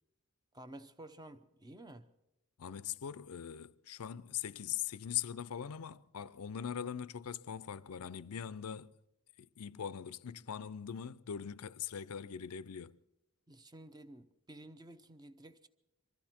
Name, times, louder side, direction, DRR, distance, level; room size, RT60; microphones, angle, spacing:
voice 1, 0.5-2.1 13.5-15.7, right 1 dB, 20° right, 0.8 m, -52 dB
voice 2, 2.6-8.9 9.4-13.0, left 9 dB, 85° left, 0.5 m, -41 dB
24.0 x 14.0 x 4.4 m
head